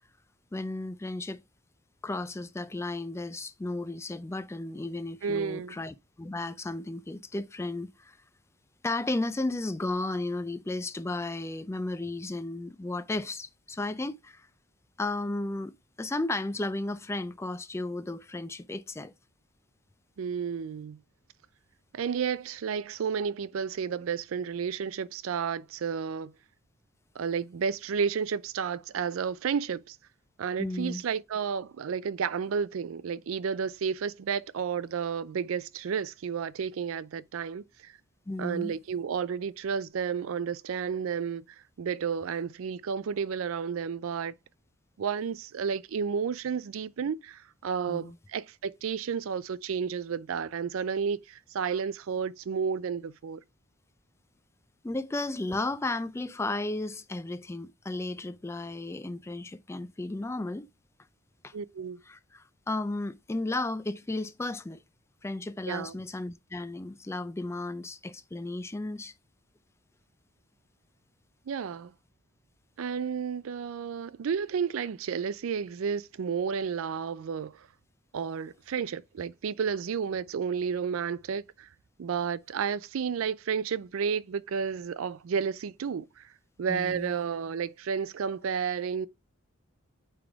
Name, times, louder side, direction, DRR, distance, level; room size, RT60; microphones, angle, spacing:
voice 1, 0.5-1.4 2.0-8.2 8.8-14.5 15.0-15.7 16.0-19.1 30.6-31.0 38.3-38.8 47.9-48.1 54.8-60.7 61.4-61.5 62.1-64.8 65.2-69.1 86.7-87.1, left 2 dB, 15° left, 0.3 m, -34 dB
voice 2, 5.2-5.8 20.2-21.0 21.9-26.3 27.2-30.0 30.4-37.9 38.4-41.4 41.8-44.3 45.0-53.4 61.5-62.0 65.7-66.0 71.5-71.9 72.8-77.7 78.1-81.7 82.0-86.3 86.6-89.1, right 6 dB, 80° right, 0.4 m, -32 dB
8.8 x 3.4 x 3.5 m
head